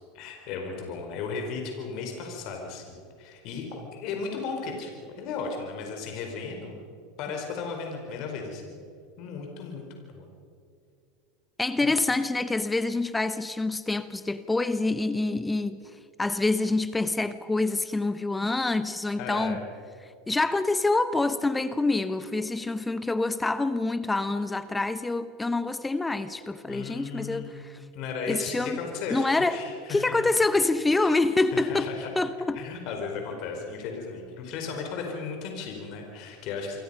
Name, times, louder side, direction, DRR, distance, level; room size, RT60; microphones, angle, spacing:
voice 1, 0.1-6.8 7.2-8.8 9.2-9.8 10.1-10.3 11.8-11.9 19.2-19.6 26.7-27.6 27.9-30.1 31.0-31.2 31.5-32.1 32.5-36.8, left 5 dB, 55° left, 3 dB, 4.5 m, -35 dB
voice 2, 11.6-15.8 16.2-19.6 20.3-27.8 28.3-28.8 29.1-29.6 29.9-31.9 32.2-32.6, left 2 dB, 10° left, 13 dB, 1.0 m, -26 dB
29.0 x 24.0 x 5.6 m, 2.4 s
hypercardioid pair, 85°, 0 cm